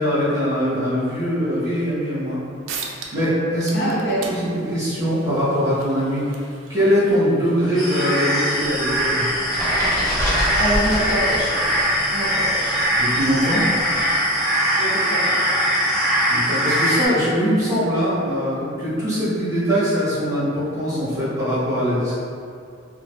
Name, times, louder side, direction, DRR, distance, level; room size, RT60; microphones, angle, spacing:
voice 1, 0.0-2.4 3.1-3.9 4.2-6.2 6.7-9.3 12.9-13.6 16.3-22.1, equal, 15° right, -12 dB, 1.3 m, -22 dB
sound 1, 2.3-2.4 2.7-3.3 3.6-8.7, right 5 dB, 85° right, 0.4 m, -39 dB
voice 2, 3.7-4.2 10.4-11.6 12.1-12.8 14.7-15.4, equal, 60° left, -5 dB, 0.7 m, -25 dB
sound 2, 7.7-17.1, equal, ahead, 0.9 m, -21 dB
sound 3, 8.6-12.0 12.2-14.1, equal, 15° left, 1.2 m, -27 dB
2.9 x 2.0 x 3.2 m, 2.4 s
head